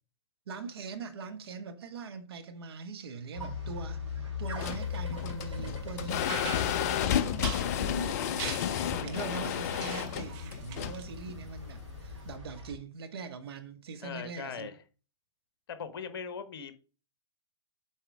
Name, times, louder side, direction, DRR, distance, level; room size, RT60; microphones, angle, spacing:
voice 1, 0.5-4.0 4.4-7.5 7.8-8.1 8.9-14.7, right 5 dB, 55° right, 1.2 m, -42 dB
sound 1, 3.3-12.7, left 4 dB, 85° right, 2.9 m, -40 dB
sound 2, 4.4-12.3, left 10 dB, 35° left, 0.4 m, -32 dB
sound 3, 6.3-11.0, right 8 dB, 30° right, 1.0 m, -42 dB
voice 2, 7.6-8.3 8.7-9.3 14.0-14.8 15.7-16.7, left 6 dB, 50° left, 1.0 m, -41 dB
7.9 x 4.2 x 4.7 m
figure-of-eight pair, 115°, 15 cm